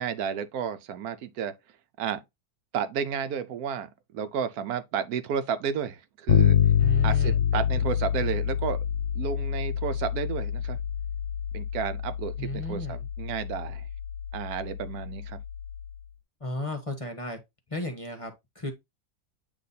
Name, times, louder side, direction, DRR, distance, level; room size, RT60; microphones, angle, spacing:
voice 1, 0.0-1.6 2.0-2.2 2.7-6.6 7.0-8.8 9.1-10.8 11.5-13.8 14.3-15.4, right 7 dB, 85° right, 1.2 m, -32 dB
Bass guitar, 6.3-15.9, left 9 dB, 65° left, 1.0 m, -27 dB
voice 2, 6.8-7.4 12.4-13.1 16.4-17.4 17.7-18.7, left 2 dB, 25° left, 1.0 m, -34 dB
8.4 x 3.0 x 3.9 m
omnidirectional pair, 1.6 m